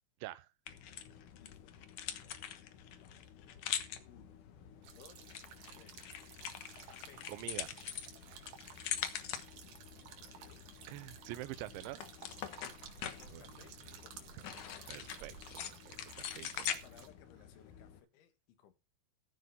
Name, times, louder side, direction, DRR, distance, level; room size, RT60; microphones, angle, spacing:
sound 1, 0.7-18.0, left 10 dB, 70° left, 2.0 m, -44 dB
voice 1, 1.4-1.7 2.1-2.3 3.0-3.3 4.1-4.4 4.9-5.3 5.8-6.1 6.9-7.3 10.2-10.7 12.6-14.4 16.6-18.7, left 9 dB, 90° left, 4.2 m, -62 dB
sound 2, 4.8-17.1, right 8 dB, 65° right, 3.8 m, -55 dB
voice 2, 7.3-7.8 8.3-8.4 10.9-12.0 13.3-13.6 14.3-14.4 14.9-16.6, right 16 dB, 85° right, 3.2 m, -46 dB
14.5 x 5.9 x 5.4 m
omnidirectional pair, 5.2 m